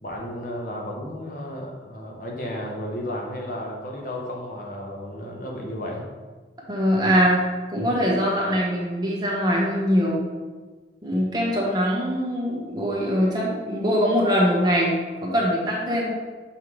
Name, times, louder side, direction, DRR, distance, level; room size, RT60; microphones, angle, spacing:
voice 1, 0.0-6.1, left 1 dB, 50° left, -1 dB, 1.0 m, -33 dB
voice 2, 6.7-7.4 7.7-10.2 11.0-14.9 15.2-16.1, equal, 25° right, -4 dB, 1.2 m, -22 dB
6.6 x 5.5 x 3.2 m, 1.4 s
head